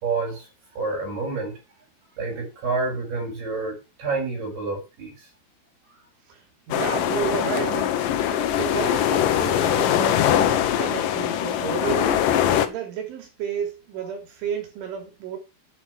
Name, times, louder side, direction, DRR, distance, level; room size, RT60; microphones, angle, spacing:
voice 1, 0.0-0.5 0.8-1.5 2.2-5.3, right 3 dB, 55° right, 7.0 m, -28 dB
voice 2, 6.3-12.2 12.7-15.4, right 7 dB, 85° right, 6.0 m, -32 dB
sound 1, 6.7-12.7, left 10 dB, 75° left, 2.0 m, -22 dB
10.0 x 7.6 x 6.1 m
omnidirectional pair, 5.4 m